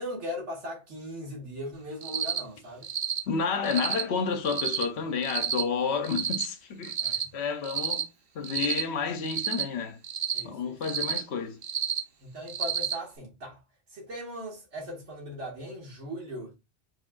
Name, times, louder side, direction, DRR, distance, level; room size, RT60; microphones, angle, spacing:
voice 1, 0.0-2.9 7.0-7.2 10.3-10.8 12.2-13.6 13.9-16.6, equal, 75° right, 2.0 m, -39 dB
Cricket, 2.0-2.4 2.8-3.2 3.6-4.0 4.5-4.8 5.2-5.6 6.0-6.4 6.8-7.2 7.6-8.0 8.4-8.8 9.2-9.6 10.0-10.4 10.8-11.2 11.6-12.0 12.5-12.9, right 8 dB, 55° right, 0.9 m, -30 dB
voice 2, 3.3-8.1 8.3-10.0 10.4-11.6, left 5 dB, 65° left, 1.0 m, -30 dB
4.8 x 3.9 x 2.4 m
omnidirectional pair, 1.2 m